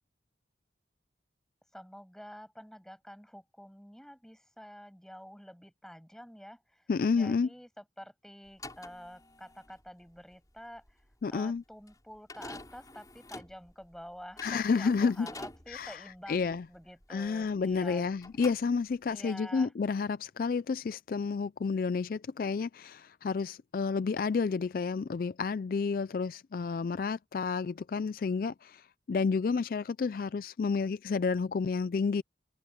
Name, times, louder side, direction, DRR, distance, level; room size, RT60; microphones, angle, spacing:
voice 1, 1.7-18.1 19.1-19.7, equal, 5° left, 7.0 m, -49 dB
voice 2, 6.9-7.5 11.2-11.6 14.4-15.3 15.7-16.0 16.3-16.6 17.1-32.2, left 5 dB, 50° left, 0.3 m, -30 dB
sound 1, 8.5-17.9 18.2-19.2, left 2 dB, 20° left, 7.0 m, -48 dB
head